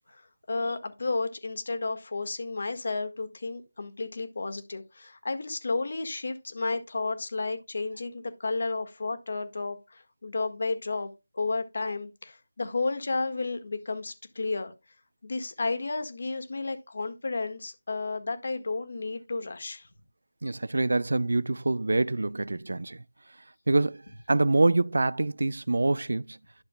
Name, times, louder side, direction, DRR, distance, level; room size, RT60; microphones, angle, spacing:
voice 1, 0.1-11.1 11.3-14.7 15.2-19.9, left 3 dB, 50° left, 1.6 m, -32 dB
voice 2, 20.4-23.0 23.7-24.0 24.3-26.4, right 2 dB, 65° right, 0.3 m, -25 dB
11.5 x 6.9 x 2.2 m
figure-of-eight pair, 160°, 0 cm